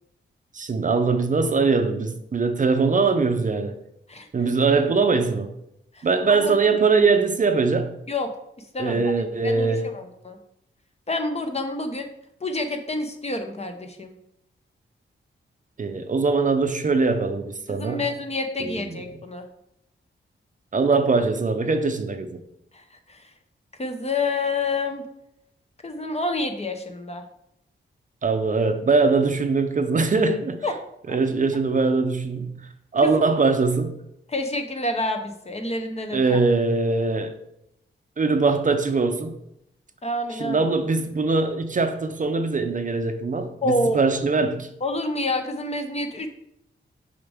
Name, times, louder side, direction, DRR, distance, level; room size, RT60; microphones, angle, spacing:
voice 1, 0.5-3.7 4.3-5.5 6.0-7.9 8.8-9.8 15.8-18.0 18.6-18.8 20.7-22.4 28.2-30.6 31.1-33.9 36.1-37.4 38.2-39.4 40.3-44.7, right 4 dB, 40° right, 0.6 m, -22 dB
voice 2, 5.9-6.5 8.1-8.3 8.7-9.0 9.4-9.7 9.9-10.4 11.1-12.1 12.4-14.1 17.7-19.5 22.7-23.3 23.8-25.1 25.8-27.2 30.6-30.7 33.0-33.2 34.3-36.4 40.0-40.6 43.6-44.0 44.8-46.3, left 2 dB, 30° left, 0.8 m, -28 dB
6.6 x 5.2 x 3.5 m
wide cardioid pair, 115°, 20 cm